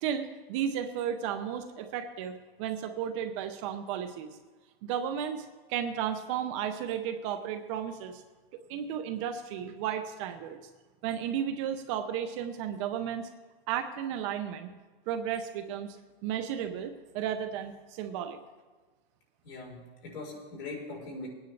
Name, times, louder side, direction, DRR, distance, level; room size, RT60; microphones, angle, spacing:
voice 1, 0.0-4.3 4.8-8.2 8.7-10.6 11.0-13.3 13.7-14.7 15.1-16.0 16.2-18.4, right 9 dB, 30° right, 8 dB, 0.6 m, -34 dB
voice 2, 19.4-21.3, left 3 dB, 65° left, -2 dB, 4.3 m, -41 dB
20.0 x 9.5 x 3.3 m, 1.3 s
supercardioid pair, 165°, 30 cm